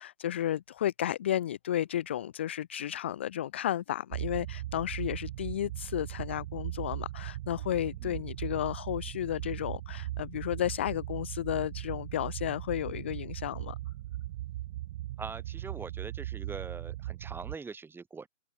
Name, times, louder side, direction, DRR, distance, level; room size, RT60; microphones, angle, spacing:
voice 1, 0.0-13.8, left 11 dB, 10° left, 0.4 m, -33 dB
sound 1, 4.1-17.5, right 15 dB, 35° right, 1.6 m, -39 dB
voice 2, 15.2-18.3, right 4 dB, 5° right, 2.3 m, -43 dB
hypercardioid pair, 150°, 37 cm